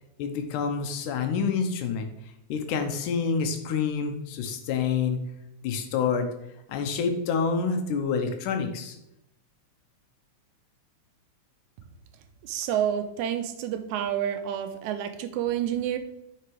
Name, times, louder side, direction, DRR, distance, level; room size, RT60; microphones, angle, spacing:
voice 1, 0.2-2.1 2.5-5.2 5.6-6.3 6.7-9.0, left 5 dB, 90° left, 6 dB, 2.4 m, -27 dB
voice 2, 12.4-16.0, right 10 dB, 80° right, 9 dB, 2.1 m, -29 dB
9.3 x 5.8 x 4.7 m, 0.83 s
omnidirectional pair, 3.5 m